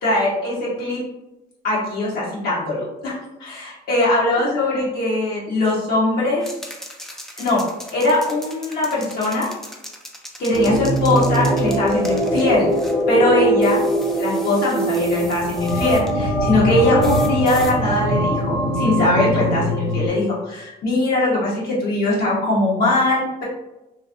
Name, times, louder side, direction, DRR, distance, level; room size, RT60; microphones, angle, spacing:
voice 1, 0.0-1.0 1.6-6.4 7.4-7.6 7.9-9.5 10.4-12.7 13.1-13.8 14.2-23.4, left 2 dB, 65° left, -7 dB, 1.1 m, -21 dB
sound 1, 6.4-13.0 13.6-16.1 17.0-17.8, equal, 5° left, 0.4 m, -39 dB
sound 2, 10.5-20.1, right 1 dB, 25° left, 0.9 m, -21 dB
2.9 x 2.6 x 2.5 m, 0.97 s
cardioid pair, 110°, 17 cm